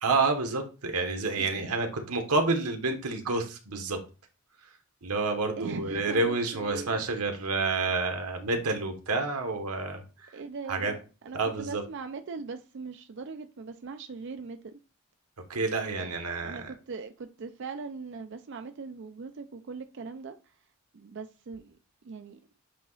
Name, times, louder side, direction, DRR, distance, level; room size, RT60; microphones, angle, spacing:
voice 1, 0.0-4.0 4.6-4.7 5.0-10.4 10.7-10.9 11.3-11.8 15.5-16.7, right 3 dB, 90° right, 1.2 m, -29 dB
voice 2, 1.4-1.7 5.6-7.0 7.6-7.9 10.3-11.0 11.2-14.8 16.0-20.7 20.9-21.8 22.0-22.4, right 4 dB, 55° right, 0.4 m, -40 dB
8.3 x 2.8 x 4.0 m
head